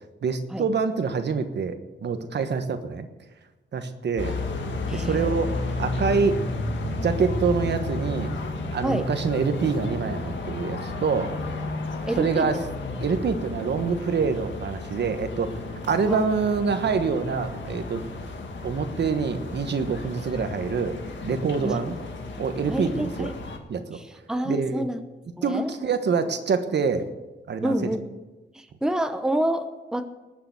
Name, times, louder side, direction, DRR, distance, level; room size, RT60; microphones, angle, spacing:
voice 1, 0.2-3.1 3.7-4.3 4.9-5.5 5.8-6.4 7.0-8.3 8.7-11.3 12.2-12.6 13.0-15.5 15.9-18.0 18.6-21.0 21.2-22.0 22.4-23.3 23.7-24.0 24.4-24.8 25.4-27.1 27.5-27.9, right 5 dB, 70° right, 8 dB, 1.3 m, -26 dB
sound 1, 4.2-23.6, left 2 dB, 90° left, 2.0 m, -33 dB
voice 2, 4.9-5.9 8.8-9.1 12.0-12.6 16.1-16.3 21.6-21.9 22.7-23.3 23.9-25.0 25.4-25.7 27.6-28.0 28.5-30.1, right 1 dB, 5° right, 8 dB, 0.9 m, -28 dB
19.0 x 6.9 x 8.0 m, 1.1 s
wide cardioid pair, 130°, 19 cm